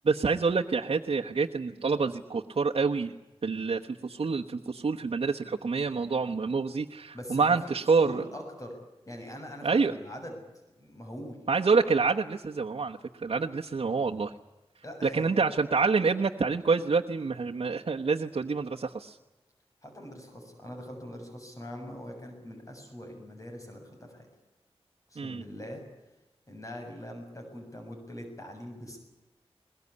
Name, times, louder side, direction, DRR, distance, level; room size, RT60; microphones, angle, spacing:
voice 1, 0.0-3.1 3.4-8.3 9.6-9.9 11.5-14.3 15.0-19.2 25.2-25.4, right 4 dB, 70° right, 0 dB, 1.1 m, -27 dB
voice 2, 7.1-7.6 8.1-8.7 9.0-10.4 10.8-11.4 14.8-15.4 19.8-24.3 25.1-25.8 26.5-29.0, equal, 30° left, 3 dB, 7.1 m, -42 dB
22.0 x 21.5 x 9.7 m, 1.0 s
wide cardioid pair, 65°, 10 cm